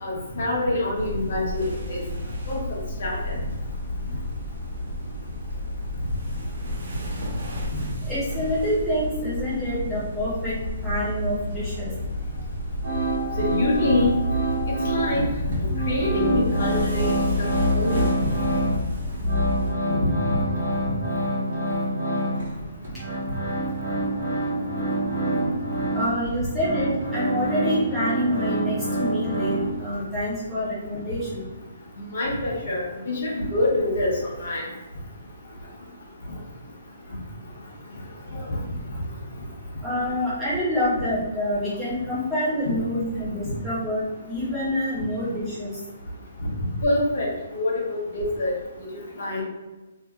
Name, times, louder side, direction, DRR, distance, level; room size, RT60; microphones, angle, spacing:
voice 1, 0.0-2.0 2.5-3.4 13.4-14.2 14.8-15.2 15.6-18.3 32.1-34.6 38.3-38.6 46.8-48.5 48.9-49.4, left 2 dB, 50° left, -3 dB, 0.9 m, -26 dB
sound 1, 0.9-19.7, left 1 dB, 65° right, 0.8 m, -30 dB
voice 2, 8.0-10.5 10.8-11.9 25.9-31.4 39.8-45.7, left 1 dB, ahead, -12 dB, 0.6 m, -27 dB
sound 2, 12.8-15.3 15.5-18.8 19.1-30.0, right 1 dB, 50° right, 1.1 m, -27 dB
3.2 x 2.7 x 2.3 m, 1.1 s
hypercardioid pair, 175°, 0 cm